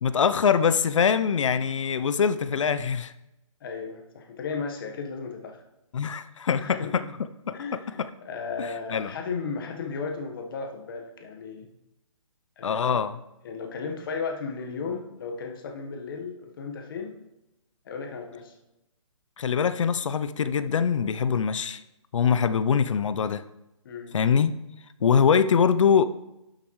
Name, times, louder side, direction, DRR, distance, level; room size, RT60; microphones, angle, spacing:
voice 1, 0.0-3.1 5.9-7.0 7.5-7.6 8.0-8.1 8.6-9.1 12.6-13.2 19.4-21.8 22.1-23.4 24.1-24.5 25.0-26.1, left 7 dB, 65° left, 13 dB, 0.6 m, -23 dB
voice 2, 3.6-5.6 6.5-7.1 7.5-11.7 12.6-13.0 13.4-17.2 17.8-18.5 23.8-24.2, left 5 dB, 40° left, 3 dB, 1.3 m, -35 dB
12.0 x 6.5 x 3.2 m, 0.91 s
hypercardioid pair, 160°, 17 cm